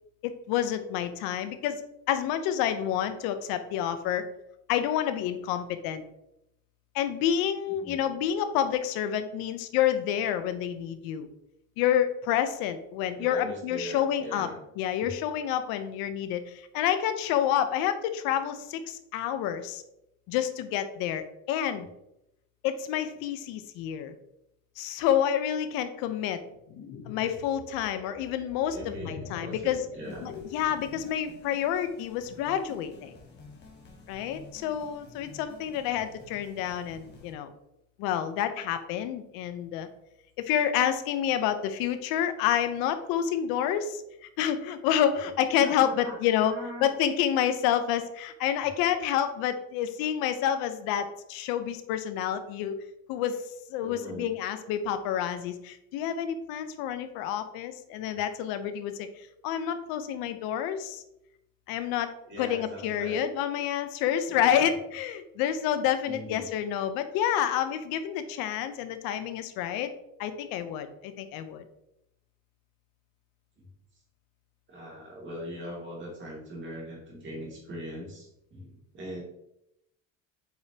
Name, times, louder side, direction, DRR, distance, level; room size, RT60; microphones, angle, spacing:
voice 1, 0.2-1.8 2.1-4.3 4.7-6.0 6.9-11.3 11.8-14.5 14.8-19.8 20.3-21.9 22.6-24.1 24.8-26.4 27.1-29.8 30.2-33.1 34.1-37.5 38.0-39.9 40.4-46.5 46.8-52.8 53.1-61.0 61.7-62.1 62.4-69.9 70.2-71.6, left 10 dB, 80° left, 10 dB, 0.8 m, -29 dB
voice 2, 7.7-8.0 13.2-14.6 15.0-15.1 28.7-30.4 45.6-46.9 53.8-54.3 62.3-63.2 64.3-64.7 66.1-66.5 73.6-73.7 74.7-79.2, equal, 35° right, -3 dB, 2.4 m, -41 dB
sound 1, 26.5-31.3, left 4 dB, 50° left, 0.9 m, -44 dB
sound 2, 30.0-37.3, left 3 dB, 30° left, 1.5 m, -51 dB
7.8 x 5.0 x 2.8 m, 0.83 s
cardioid pair, 160°, 35 cm